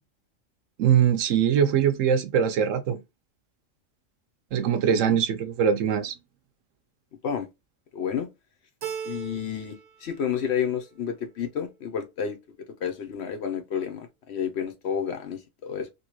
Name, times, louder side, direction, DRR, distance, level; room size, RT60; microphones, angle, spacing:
voice 1, 0.8-3.0 4.5-6.1, right 8 dB, 80° right, 1.0 m, -22 dB
voice 2, 4.9-5.2 7.2-7.5 7.9-8.3 9.0-12.4 12.8-15.9, left 7 dB, 60° left, 0.9 m, -30 dB
Keyboard (musical), 8.8-9.9 10.2-11.0, right 7 dB, 45° right, 0.5 m, -38 dB
2.9 x 2.7 x 2.9 m
omnidirectional pair, 1.3 m